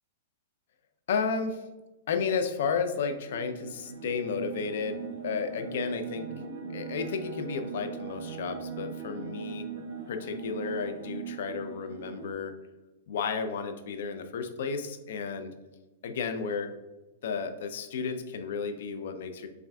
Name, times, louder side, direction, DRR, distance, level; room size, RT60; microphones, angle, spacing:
voice 1, 1.1-1.6 2.1-6.3 6.7-9.7 10.1-12.5 13.1-15.5 16.0-16.7 17.2-19.5, left 5 dB, 65° left, 8 dB, 0.4 m, -32 dB
sound 1, 3.1-12.3, right 6 dB, 55° right, 0.7 m, -40 dB
5.6 x 2.5 x 2.2 m, 1.1 s
hypercardioid pair, 160°, 0 cm